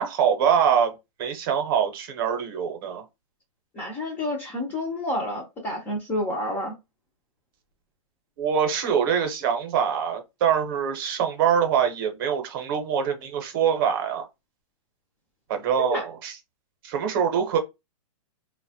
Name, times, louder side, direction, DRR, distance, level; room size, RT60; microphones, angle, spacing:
voice 1, 0.0-3.0 8.4-14.3 15.5-16.4 16.8-17.6, right 8 dB, 40° right, 0.7 m, -24 dB
voice 2, 3.7-6.8 15.8-16.0, left 1 dB, 10° left, 0.3 m, -29 dB
2.9 x 2.1 x 2.7 m
hypercardioid pair, 160°, 18 cm